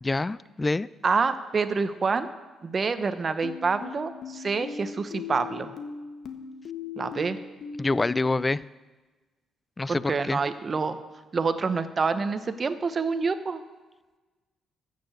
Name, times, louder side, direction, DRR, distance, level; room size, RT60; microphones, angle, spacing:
voice 1, 0.0-0.9 7.8-8.6 9.8-10.4, left 2 dB, 20° left, 20 dB, 0.3 m, -26 dB
voice 2, 1.0-2.3 2.6-5.7 7.0-7.4 9.9-11.0 11.3-13.6, right 4 dB, 35° right, 11 dB, 0.9 m, -27 dB
sound 1, 3.4-8.5, left 5 dB, 60° left, 1.3 m, -39 dB
14.0 x 6.9 x 7.8 m, 1.3 s
cardioid pair, 90°, 0 cm